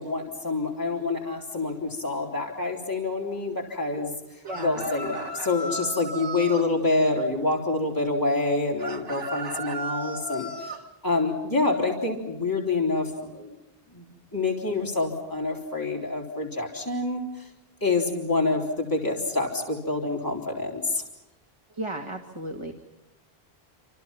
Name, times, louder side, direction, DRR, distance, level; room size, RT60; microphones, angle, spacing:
voice 1, 0.0-4.1 4.6-10.8 11.0-13.5 13.9-17.5 17.8-21.0, left 3 dB, 20° left, -1 dB, 3.8 m, -27 dB
voice 2, 4.4-4.9 21.7-22.7, right 1 dB, 30° right, 3 dB, 2.1 m, -35 dB
sound 1, 4.5-6.7 8.8-10.8, right 2 dB, 75° right, 2.6 m, -35 dB
28.0 x 27.0 x 5.9 m, 0.92 s
omnidirectional pair, 1.0 m